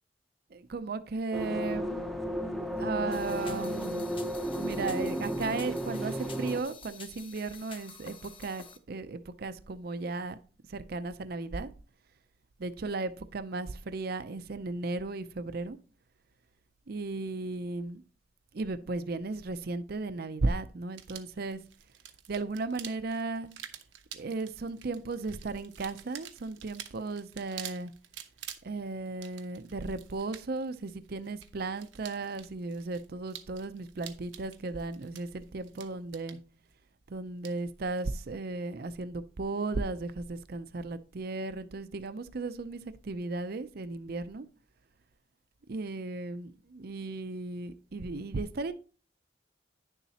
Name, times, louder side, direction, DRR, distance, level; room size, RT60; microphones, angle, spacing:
voice 1, 0.5-2.1 2.7-4.1 4.6-10.4 10.7-11.7 12.6-15.8 16.9-18.0 18.5-21.6 22.3-23.5 24.1-27.9 28.6-36.4 37.1-44.5 45.7-48.7, right 3 dB, 55° right, 0.5 m, -35 dB
sound 1, 1.3-6.6, equal, ahead, 0.7 m, -33 dB
sound 2, 3.1-8.8, left 5 dB, 30° left, 0.9 m, -49 dB
sound 3, 20.9-38.1, right 10 dB, 85° right, 0.9 m, -49 dB
10.0 x 7.1 x 2.8 m
head